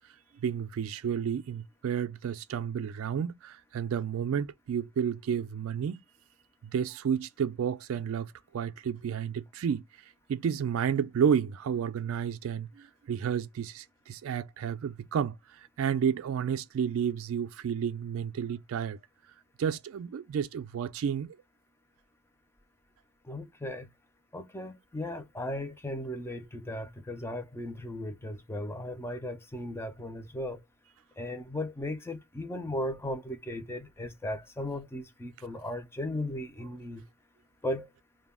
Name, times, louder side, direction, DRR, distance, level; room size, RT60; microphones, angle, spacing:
voice 1, 0.4-6.0 6.7-9.8 10.3-19.0 19.6-21.4, right 7 dB, 65° right, 0.3 m, -31 dB
voice 2, 23.2-23.9 24.3-30.6 31.2-37.1 37.6-37.9, left 1 dB, 10° left, 0.4 m, -36 dB
2.2 x 2.0 x 3.3 m
head